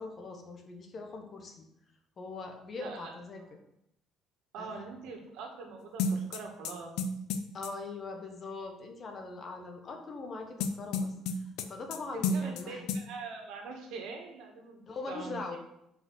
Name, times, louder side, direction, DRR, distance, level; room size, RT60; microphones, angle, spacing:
voice 1, 0.0-1.7 2.2-3.4 4.6-4.8 7.5-12.8 14.9-15.6, left 3 dB, 30° left, 4 dB, 1.1 m, -41 dB
voice 2, 2.8-3.1 4.5-6.9 12.1-15.6, right 4 dB, 80° right, 2 dB, 1.7 m, -43 dB
sound 1, 6.0-7.7 10.6-12.0 12.2-12.6 12.9-13.0, left 3 dB, 85° left, 0.6 m, -31 dB
5.8 x 5.2 x 6.3 m, 0.79 s
cardioid pair, 170°, 0 cm